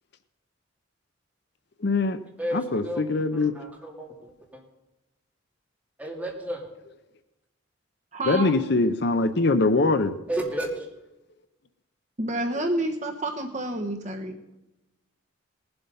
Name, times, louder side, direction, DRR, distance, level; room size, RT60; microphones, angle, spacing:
voice 1, 1.8-2.2 2.5-3.5 8.3-10.1, left 3 dB, 55° left, 11 dB, 0.6 m, -22 dB
voice 2, 2.4-4.6 6.0-6.7 10.3-10.9, right 1 dB, 5° right, -2 dB, 2.7 m, -33 dB
voice 3, 8.1-8.6 12.2-14.4, right 1 dB, 35° right, 4 dB, 1.1 m, -29 dB
19.0 x 7.9 x 5.5 m, 0.97 s
head